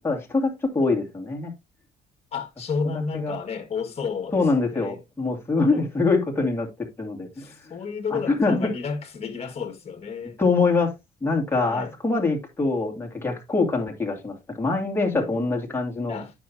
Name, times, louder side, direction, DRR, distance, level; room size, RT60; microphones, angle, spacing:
voice 1, 0.0-1.5 3.1-3.4 4.3-7.5 8.1-8.7 10.4-10.9 11.2-16.2, left 3 dB, 15° left, 2.4 m, -24 dB
voice 2, 2.3-4.4 4.7-5.0 5.7-5.8 7.4-10.4 11.6-11.9 15.0-15.3 16.1-16.3, left 5 dB, 40° left, 1.8 m, -32 dB
9.2 x 6.0 x 2.7 m
cardioid pair, 110°, 17 cm